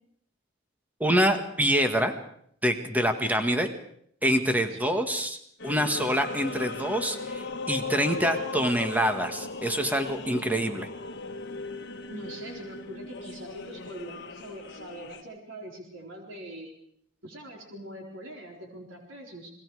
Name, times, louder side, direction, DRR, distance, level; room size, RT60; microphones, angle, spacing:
voice 1, 1.0-2.1 2.6-3.7 4.2-5.4 5.6-10.9, equal, 10° right, 6 dB, 1.7 m, -26 dB
voice 2, 4.7-5.1 12.1-16.7 17.2-19.5, right 1 dB, 85° right, 0 dB, 4.3 m, -43 dB
sound 1, 5.6-15.2, left 3 dB, 60° left, 1.5 m, -37 dB
29.5 x 21.0 x 4.9 m, 0.67 s
head